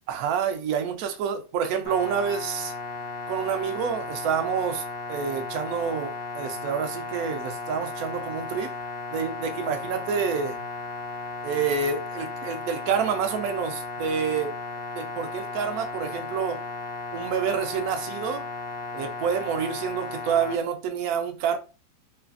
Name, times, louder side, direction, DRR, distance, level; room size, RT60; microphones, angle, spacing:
voice 1, 0.1-2.7 3.3-8.7 9.1-10.6 11.4-14.5 14.9-16.6 17.1-18.4 18.9-21.6, right 7 dB, 70° right, 0.9 m, -28 dB
sound 1, 1.8-20.6, left 3 dB, 70° left, 1.0 m, -35 dB
3.1 x 2.3 x 2.4 m
omnidirectional pair, 1.9 m